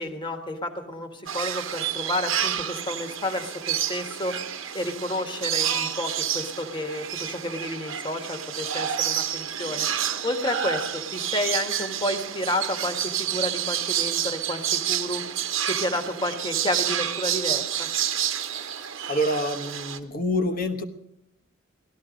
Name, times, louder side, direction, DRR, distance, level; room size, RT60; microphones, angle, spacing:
voice 1, 0.0-4.4 4.7-9.9 10.2-15.2 15.7-17.9, left 1 dB, 25° left, 6 dB, 1.4 m, -30 dB
sound 1, 1.3-20.0, right 10 dB, 70° right, 1.0 m, -29 dB
voice 2, 19.1-20.8, equal, 45° left, 7 dB, 1.2 m, -26 dB
17.5 x 13.0 x 5.1 m, 0.83 s
head